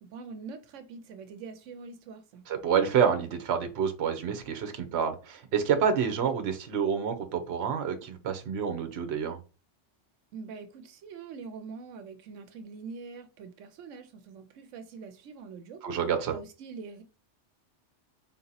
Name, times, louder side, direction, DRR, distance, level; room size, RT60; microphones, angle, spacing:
voice 1, 0.0-2.4 10.3-15.8 16.3-17.0, right 5 dB, 90° right, 1.0 m, -44 dB
voice 2, 2.5-9.4 15.8-16.4, right 7 dB, 60° right, 1.0 m, -28 dB
3.8 x 2.8 x 3.9 m
omnidirectional pair, 1.3 m